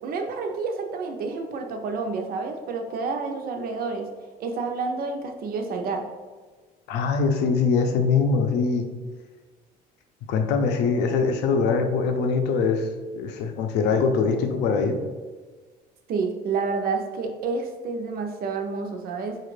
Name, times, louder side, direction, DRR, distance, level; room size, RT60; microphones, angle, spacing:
voice 1, 0.0-4.1 4.4-6.1 16.1-19.4, right 4 dB, 65° right, 4 dB, 0.6 m, -29 dB
voice 2, 6.9-8.9 10.3-15.0, left 5 dB, 85° left, 6 dB, 0.5 m, -23 dB
4.9 x 2.4 x 3.2 m, 1.4 s
cardioid pair, 110°, 17 cm